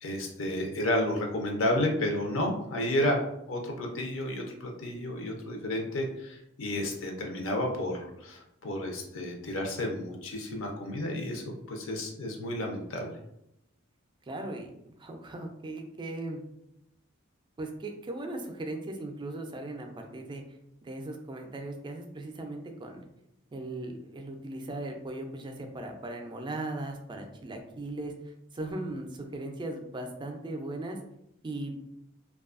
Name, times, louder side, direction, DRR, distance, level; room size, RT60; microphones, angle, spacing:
voice 1, 0.0-3.2 3.5-13.2, left 1 dB, 70° left, 2 dB, 0.5 m, -31 dB
voice 2, 14.3-16.4 17.6-20.4 20.8-23.0 23.5-31.0 31.4-31.7, right 2 dB, 25° right, 4 dB, 0.3 m, -38 dB
2.6 x 2.3 x 2.4 m, 0.81 s
head